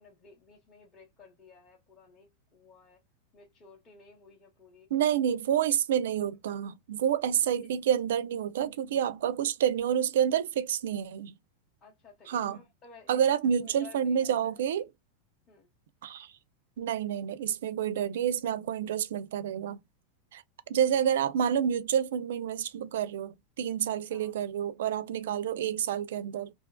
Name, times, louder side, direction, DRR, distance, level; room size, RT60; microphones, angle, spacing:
voice 1, 0.0-3.0 3.3-4.9 7.6-7.7 11.8-13.3 13.6-14.6 15.5-15.7 24.1-24.3, left 4 dB, 20° left, 0.6 m, -55 dB
voice 2, 4.9-11.3 12.3-12.6 13.1-14.9 16.0-16.3 16.8-19.8 20.3-20.4 20.7-26.5, right 9 dB, 75° right, 0.4 m, -28 dB
2.7 x 2.4 x 2.2 m
supercardioid pair, 175°, 0 cm